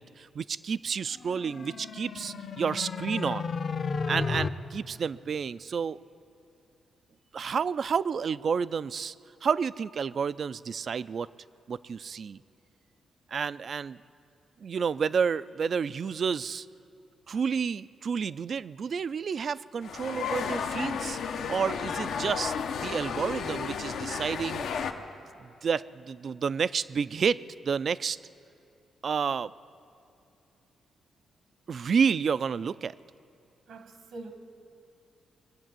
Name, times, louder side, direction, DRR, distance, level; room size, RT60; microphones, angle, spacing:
voice 1, 0.0-3.5 4.1-6.0 7.3-9.1 9.4-11.3 11.7-12.4 13.3-14.0 14.6-16.7 17.3-21.2 21.5-24.7 25.4-27.4 27.6-28.2 29.0-29.5 31.7-32.9, right 6 dB, 50° right, 18 dB, 0.3 m, -30 dB
sound 1, 1.2-4.5, left 5 dB, 50° left, 0.7 m, -33 dB
sound 2, 19.8-24.9, left 6 dB, 80° left, 0.8 m, -33 dB
voice 2, 33.7-34.3, right 2 dB, 85° right, 6 dB, 1.7 m, -43 dB
23.0 x 8.1 x 7.5 m, 2.6 s
cardioid pair, 110°, 0 cm